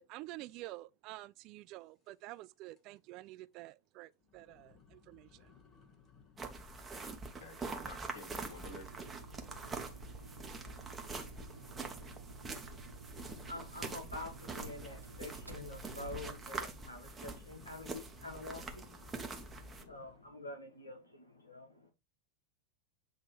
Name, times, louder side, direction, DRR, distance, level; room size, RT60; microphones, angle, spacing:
voice 1, 0.0-5.5, right 18 dB, 40° right, 0.3 m, -49 dB
sound 1, 2.1-2.5 2.7-3.1 3.5-3.6 4.2-20.4, left 6 dB, 25° left, 1.4 m, -62 dB
sound 2, 6.4-19.8, right 3 dB, 15° right, 1.1 m, -45 dB
voice 2, 7.3-9.0, left 2 dB, 55° left, 3.2 m, -51 dB
sound 3, 8.6-16.7, right 4 dB, 80° right, 0.7 m, -53 dB
voice 3, 13.5-21.9, left 2 dB, 80° left, 1.1 m, -47 dB
7.9 x 2.9 x 4.6 m
figure-of-eight pair, 90°, 0 cm